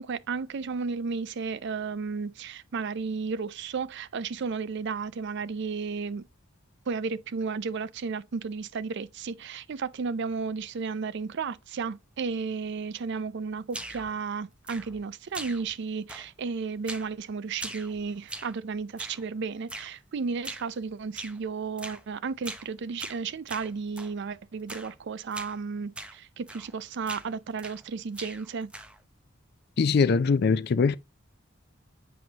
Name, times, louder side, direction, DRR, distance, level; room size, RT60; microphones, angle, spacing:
voice 1, 0.0-6.2 6.9-28.7, right 5 dB, 55° right, 0.4 m, -33 dB
sound 1, 13.7-14.2 14.7-15.1 15.3-15.8 16.1-16.5 16.9-17.2 17.5-18.6 19.0-19.3 19.7-19.9 20.4-20.7 21.2-21.4 21.8-22.0 22.4-22.7 23.0-24.1 24.7-25.0 25.3-25.6 25.9-26.2 26.5-26.8 27.1-27.9 28.1-29.0, right 1 dB, 5° right, 0.5 m, -41 dB
voice 2, 29.8-31.0, left 5 dB, 50° left, 0.4 m, -22 dB
7.7 x 5.3 x 2.9 m
head